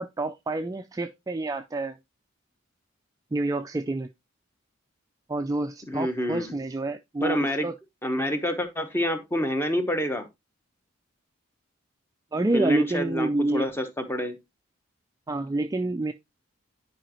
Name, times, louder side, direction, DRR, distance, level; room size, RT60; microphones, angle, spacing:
voice 1, 0.0-2.0 3.3-4.1 5.3-7.8 12.3-13.7 15.3-16.1, right 2 dB, 15° right, 0.3 m, -28 dB
voice 2, 5.9-6.6 7.2-7.7 8.0-10.3 12.5-14.4, equal, 10° left, 1.0 m, -27 dB
10.5 x 4.9 x 2.9 m
head